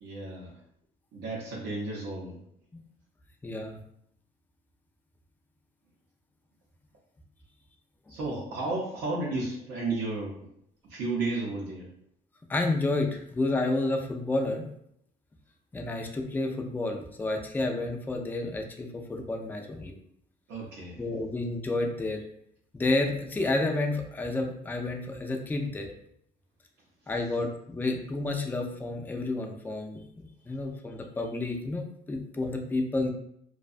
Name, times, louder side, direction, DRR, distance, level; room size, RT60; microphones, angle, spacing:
voice 1, 0.0-0.5 1.1-2.4 8.1-10.5 10.9-11.9 20.5-21.0, right 3 dB, 75° right, -4 dB, 0.6 m, -33 dB
voice 2, 3.4-3.8 12.5-14.7 15.7-19.9 21.0-22.2 22.7-25.9 27.1-30.0 30.5-33.1, left 2 dB, 10° left, 3 dB, 0.3 m, -30 dB
2.6 x 2.2 x 2.4 m, 0.71 s
cardioid pair, 110°, 17 cm